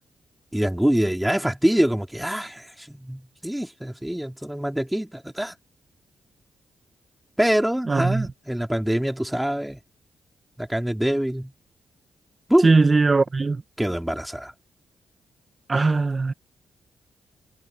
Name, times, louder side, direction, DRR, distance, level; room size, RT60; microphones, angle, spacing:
voice 1, 0.5-5.5 7.4-9.8 10.6-11.5 12.5-12.7 13.8-14.5, equal, 5° right, 2.5 m, -24 dB
voice 2, 7.9-8.3 12.6-13.6 15.7-16.3, right 3 dB, 35° right, 1.0 m, -19 dB
cardioid pair, 60°, 0 cm